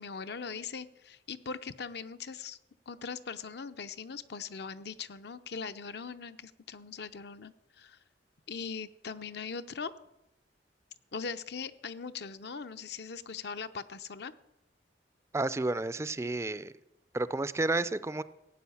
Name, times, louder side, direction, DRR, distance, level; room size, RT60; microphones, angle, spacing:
voice 1, 0.0-2.6 2.9-8.0 8.5-9.9 11.1-14.3, left 5 dB, 65° left, 11 dB, 0.7 m, -40 dB
voice 2, 15.3-16.7 17.1-18.2, right 2 dB, 15° right, 15 dB, 0.4 m, -31 dB
16.0 x 9.0 x 7.1 m, 0.90 s
head